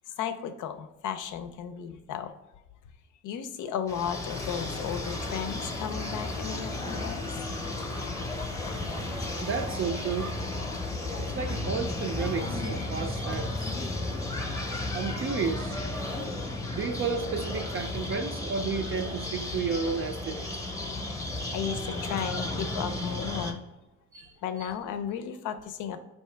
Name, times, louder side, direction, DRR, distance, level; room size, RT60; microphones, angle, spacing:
voice 1, 0.1-2.3 3.2-7.3 11.2-11.3 21.5-23.6 24.4-26.0, left 8 dB, 80° left, 9 dB, 0.5 m, -34 dB
sound 1, 3.9-23.5, left 2 dB, 10° left, 0.7 m, -33 dB
voice 2, 9.4-10.3 11.2-13.8 14.9-15.8 16.7-20.5 24.1-24.3 24.6-24.7, right 5 dB, 45° right, 4 dB, 0.4 m, -32 dB
4.6 x 2.8 x 3.3 m, 1.0 s
cardioid pair, 90°, 30 cm